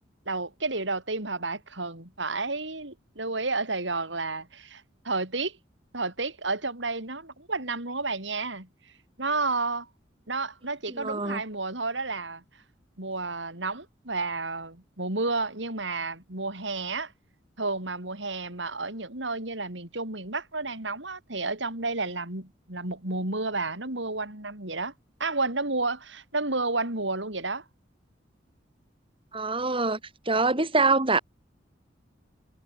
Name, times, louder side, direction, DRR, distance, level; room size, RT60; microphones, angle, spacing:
voice 1, 0.3-5.6 5.9-8.7 9.2-9.9 10.3-12.4 13.0-17.1 17.6-24.9 25.2-27.6, right 3 dB, 75° right, 6.3 m, -31 dB
voice 2, 10.9-11.4 29.3-30.0 30.3-31.2, right 3 dB, 30° right, 4.3 m, -24 dB
head